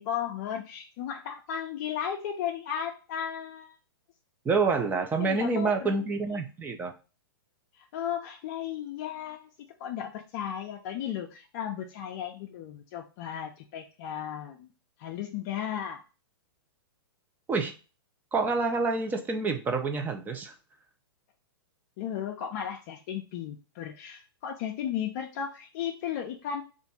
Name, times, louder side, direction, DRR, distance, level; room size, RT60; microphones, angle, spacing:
voice 1, 0.0-3.8 5.2-6.0 6.3-6.4 7.7-14.7 15.0-16.0 22.0-26.6, left 9 dB, 40° left, 2 dB, 0.5 m, -35 dB
voice 2, 4.5-6.9 17.5-17.7 18.3-20.5, right 4 dB, 15° right, 5 dB, 0.6 m, -27 dB
3.5 x 2.6 x 4.1 m, 0.32 s
hypercardioid pair, 135°, 13 cm